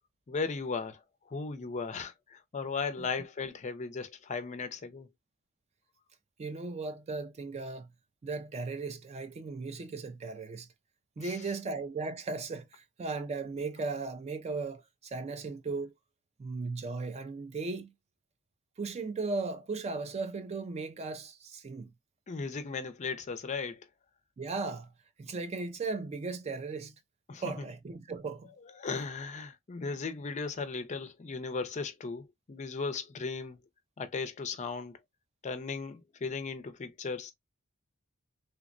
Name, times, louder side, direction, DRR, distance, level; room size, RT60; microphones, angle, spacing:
voice 1, 0.3-1.0 1.3-5.1 11.2-11.4 22.3-23.8 27.3-27.7 28.8-33.6 34.0-35.0 35.4-37.3, left 4 dB, 35° left, 0.4 m, -36 dB
voice 2, 6.4-7.9 8.2-10.7 11.2-15.9 16.4-17.9 18.8-21.9 24.4-24.9 25.2-26.9 27.4-28.5, right 3 dB, 30° right, 0.3 m, -37 dB
3.2 x 2.0 x 2.4 m
head